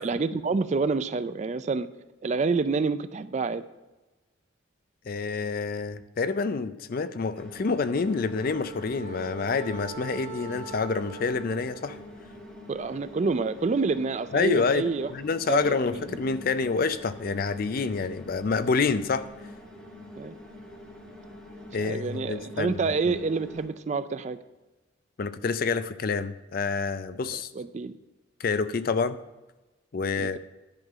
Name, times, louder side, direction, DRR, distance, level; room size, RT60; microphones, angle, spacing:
voice 1, 0.0-1.9 2.2-3.6 12.7-15.1 15.5-16.1 20.2-20.3 21.8-24.4 27.5-28.0 30.2-30.3, right 4 dB, 35° right, 13 dB, 0.3 m, -28 dB
voice 2, 5.1-12.0 14.3-19.3 21.7-22.8 23.1-23.2 25.2-27.5 28.4-29.2 29.9-30.4, left 4 dB, 45° left, 12 dB, 0.4 m, -27 dB
sound 1, 7.3-23.7, left 1 dB, 5° left, 1.9 m, -46 dB
Wind instrument woodwind instrument, 7.7-12.1, right 5 dB, 65° right, 1.7 m, -42 dB
10.5 x 3.9 x 7.4 m, 1.1 s
head